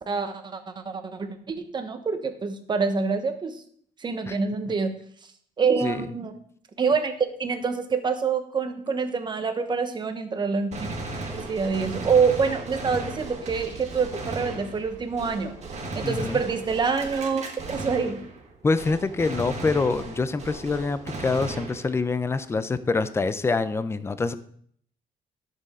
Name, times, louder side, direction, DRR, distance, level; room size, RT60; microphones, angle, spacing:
voice 1, 0.1-3.5 4.0-4.9 5.6-6.3 6.8-11.0 11.3-15.5 15.9-18.2, right 5 dB, 30° right, 7 dB, 1.0 m, -26 dB
Gunshot gunfire, 10.7-18.5 18.8-22.1, right 2 dB, 45° right, 1.9 m, -36 dB
voice 2, 16.0-16.4 18.6-24.3, left 4 dB, 15° left, 12 dB, 0.5 m, -25 dB
11.5 x 6.8 x 3.7 m, 0.62 s
cardioid pair, 130°, 15 cm